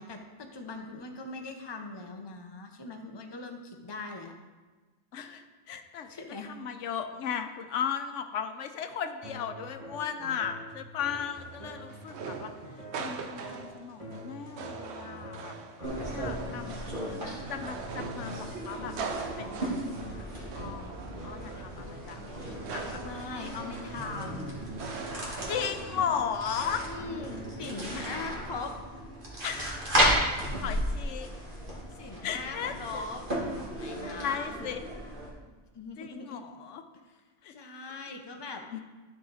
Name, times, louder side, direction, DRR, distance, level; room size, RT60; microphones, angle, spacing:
voice 1, 0.0-4.3 6.1-6.5 16.5-17.4 23.0-24.5 26.8-28.7 31.9-33.2 33.8-34.7 35.7-36.4 37.5-38.6, left 3 dB, 25° left, 3 dB, 0.7 m, -41 dB
voice 2, 5.1-6.1 6.4-12.5 13.0-17.2 17.5-18.9 19.4-23.0 23.4-23.9 25.5-26.9 29.4-30.0 30.3-31.3 32.2-33.1 34.2-34.8 36.0-36.8 37.4-37.6 38.7-38.8, left 7 dB, 90° left, 8 dB, 1.0 m, -36 dB
sound 1, 9.2-28.3, equal, 30° right, 1.6 m, -46 dB
sound 2, 11.3-25.9, right 5 dB, 70° right, 0.9 m, -42 dB
sound 3, 15.8-35.3, equal, 45° right, 2.1 m, -34 dB
12.5 x 4.9 x 4.0 m, 1.3 s
omnidirectional pair, 1.2 m